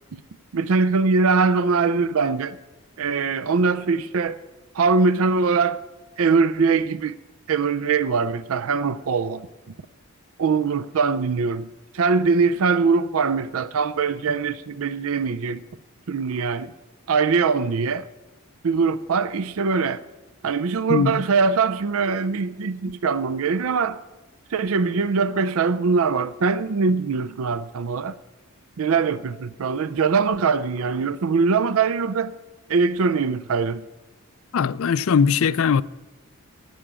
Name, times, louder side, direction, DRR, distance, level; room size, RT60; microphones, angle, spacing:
voice 1, 0.5-2.6 3.0-4.4 4.7-5.8 6.2-7.1 7.5-9.5 10.4-11.7 11.9-15.6 16.1-16.7 17.1-18.1 18.6-20.0 20.4-24.0 24.5-28.1 28.8-32.3 32.7-33.8, right 4 dB, 75° right, 0.5 m, -22 dB
voice 2, 20.9-21.2 34.5-35.8, left 6 dB, 70° left, 0.4 m, -20 dB
11.5 x 9.8 x 7.4 m
head